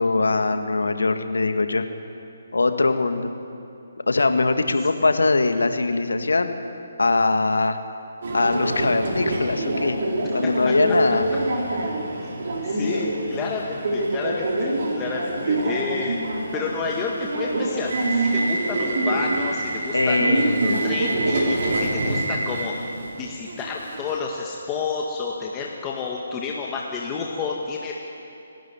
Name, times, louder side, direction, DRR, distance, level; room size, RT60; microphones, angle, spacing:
voice 1, 0.0-1.9 2.5-3.3 4.1-6.5 7.0-7.8 8.3-10.0 10.3-11.3 12.9-13.0 19.9-20.9, left 3 dB, 80° left, 7 dB, 1.8 m, -22 dB
Subway metro underground, 8.2-24.2, right 2 dB, 55° right, 4.7 m, -25 dB
voice 2, 10.4-10.7 12.6-16.2 16.5-27.9, left 5 dB, 20° left, -2 dB, 1.8 m, -30 dB
28.5 x 12.5 x 9.8 m, 2.8 s
figure-of-eight pair, 150°, 0 cm